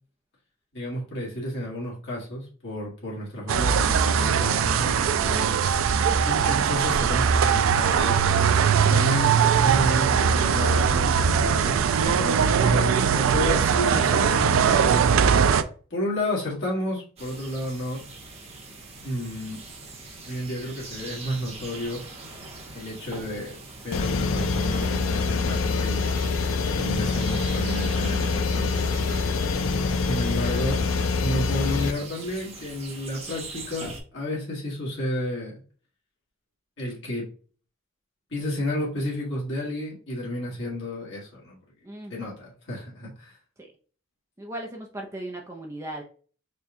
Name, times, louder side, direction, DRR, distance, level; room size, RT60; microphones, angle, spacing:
voice 1, 0.7-5.7 6.3-8.2 8.8-15.0 15.9-18.0 19.0-19.6 20.2-22.0 22.7-23.6 23.8-26.1 26.8-29.4 30.1-30.8 31.2-35.6 36.8-37.3 38.3-41.6 42.1-43.4, left 1 dB, 65° left, -4 dB, 1.6 m, -31 dB
sound 1, 3.5-15.6, right 7 dB, 80° right, 0.4 m, -21 dB
sound 2, 17.2-34.0, right 3 dB, 30° right, 0.9 m, -42 dB
sound 3, 23.9-31.9, left 4 dB, 90° left, 0.4 m, -25 dB
voice 2, 41.8-42.3 43.6-43.7 44.4-46.0, right 1 dB, 15° right, 0 dB, 0.5 m, -38 dB
4.3 x 2.2 x 3.6 m, 0.41 s
head